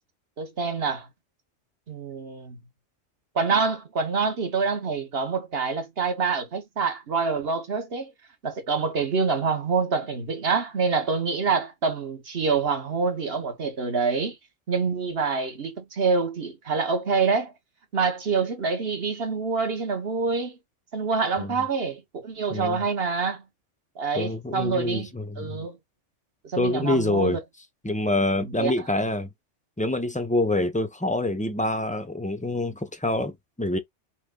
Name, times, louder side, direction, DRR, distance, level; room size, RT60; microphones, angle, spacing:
voice 1, 0.4-1.1 1.9-2.6 3.3-8.1 8.4-14.4 14.7-17.5 17.9-20.6 20.9-23.4 24.0-25.1 25.4-25.8 26.4-27.4 28.6-28.7, right 5 dB, 55° right, 1.3 m, -26 dB
voice 2, 24.2-25.7 26.6-27.4 27.8-29.3 29.8-33.3 33.6-33.8, left 2 dB, 10° left, 0.5 m, -26 dB
5.8 x 2.2 x 3.7 m
omnidirectional pair, 1.2 m